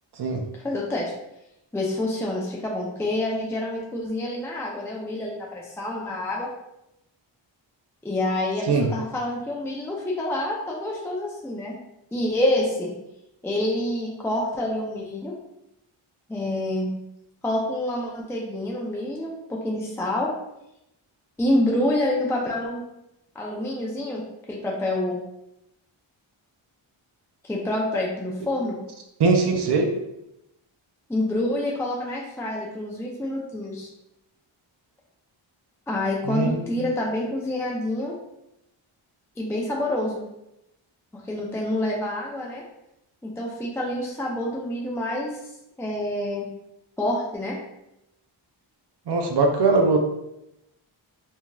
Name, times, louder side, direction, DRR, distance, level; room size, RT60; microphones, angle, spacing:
voice 1, 0.5-1.1 1.7-6.5 8.0-11.8 12.1-12.9 13.4-15.4 16.3-16.9 17.4-20.3 21.4-22.8 23.3-25.2 27.4-28.8 31.1-33.9 35.9-38.2 39.4-40.2 41.1-42.6 43.2-45.4 45.8-46.5 47.0-47.5, left 1 dB, 5° left, -3 dB, 0.5 m, -27 dB
voice 2, 29.2-29.9 36.3-36.6 49.1-50.0, right 4 dB, 55° right, 3 dB, 0.6 m, -21 dB
2.8 x 2.6 x 2.3 m, 0.87 s
cardioid pair, 45°, 50 cm